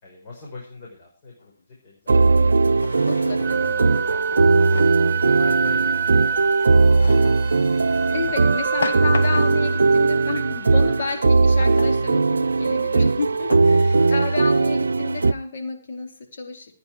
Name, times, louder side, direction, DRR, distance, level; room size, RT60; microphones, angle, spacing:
voice 1, 0.0-2.6 3.4-4.4 4.8-6.9 7.3-7.7 13.9-14.2, left 3 dB, 40° left, -2 dB, 5.2 m, -42 dB
Drawer open or close, 1.4-1.5 2.7-3.6 4.3-5.1 7.0-7.5 8.3-9.7 11.6-12.1 12.7-12.8 13.5-14.1, left 4 dB, 75° left, 1.5 m, -33 dB
sound 1, 2.1-15.3, right 3 dB, 80° right, 0.5 m, -19 dB
voice 2, 3.1-3.6 8.0-16.7, left 4 dB, 60° left, 2 dB, 4.5 m, -31 dB
Wind instrument woodwind instrument, 3.4-11.2, right 6 dB, 10° right, 1.8 m, -29 dB
14.5 x 9.8 x 4.8 m, 0.39 s
figure-of-eight pair, 135°, 0 cm